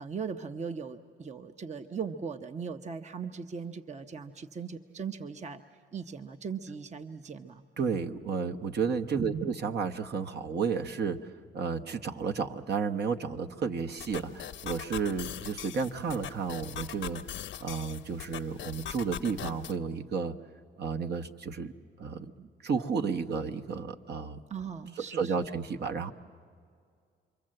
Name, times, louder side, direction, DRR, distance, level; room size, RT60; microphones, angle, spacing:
voice 1, 0.0-5.6 5.9-7.6 9.2-9.5 24.5-25.5, right 6 dB, 35° right, 8 dB, 0.9 m, -38 dB
voice 2, 7.8-11.2 11.5-17.2 17.6-20.3 20.8-21.7 22.0-24.4 25.1-26.1, right 5 dB, 55° right, 5 dB, 1.1 m, -32 dB
sound 1, 14.0-19.8, left 10 dB, 75° left, 0.8 m, -41 dB
28.0 x 23.5 x 7.7 m, 2.2 s
cardioid pair, 90°, 20 cm